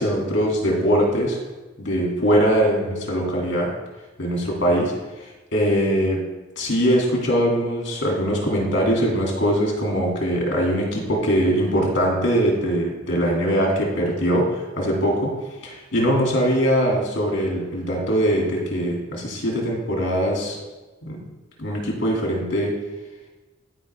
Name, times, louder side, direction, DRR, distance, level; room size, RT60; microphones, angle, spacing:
voice 1, 0.0-1.4 1.8-3.7 4.2-4.9 5.5-6.2 6.6-15.3 15.6-20.6 21.0-21.2 21.6-22.7, equal, 65° left, -2 dB, 2.4 m, -21 dB
12.5 x 5.0 x 3.4 m, 1.2 s
head